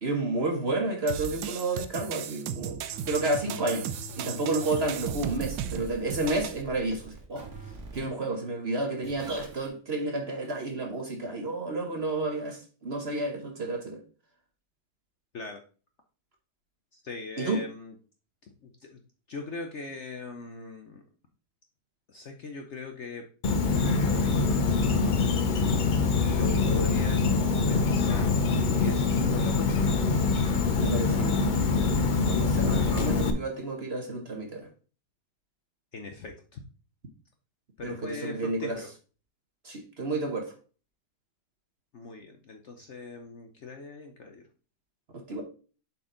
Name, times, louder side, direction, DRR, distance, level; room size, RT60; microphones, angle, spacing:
voice 1, 0.0-2.8 3.1-3.9 4.2-7.5 7.9-14.0 17.4-17.6 30.8-31.4 32.3-34.7 37.8-38.8 39.6-40.5 45.3-45.4, right 2 dB, 45° right, 1.1 m, -31 dB
sound 1, 1.1-6.6, right 9 dB, 75° right, 1.2 m, -36 dB
sound 2, 2.9-8.1 9.0-9.7, right 3 dB, 60° right, 2.0 m, -43 dB
voice 2, 16.9-17.9 18.6-19.0 19.3-21.0 22.1-23.2 23.5-24.5 26.2-28.3 28.8-30.1 35.9-36.6 37.8-38.9 41.9-44.4, left 3 dB, 55° left, 0.9 m, -40 dB
Insect, 23.4-33.3, left 4 dB, 75° left, 0.4 m, -24 dB
7.4 x 4.4 x 3.8 m
omnidirectional pair, 1.8 m